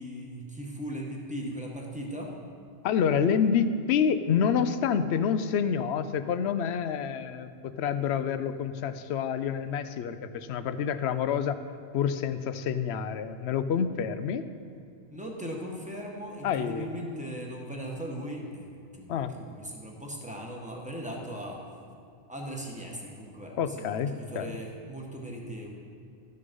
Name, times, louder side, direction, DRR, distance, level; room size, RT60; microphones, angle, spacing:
voice 1, 0.0-2.3 15.1-21.6 22.3-25.7, equal, 5° right, -1 dB, 1.4 m, -38 dB
voice 2, 2.8-11.6 11.9-14.5 16.4-16.9 19.1-19.3 23.6-24.6, left 7 dB, 75° left, 12 dB, 0.8 m, -28 dB
13.5 x 6.7 x 5.4 m, 2.4 s
omnidirectional pair, 1.1 m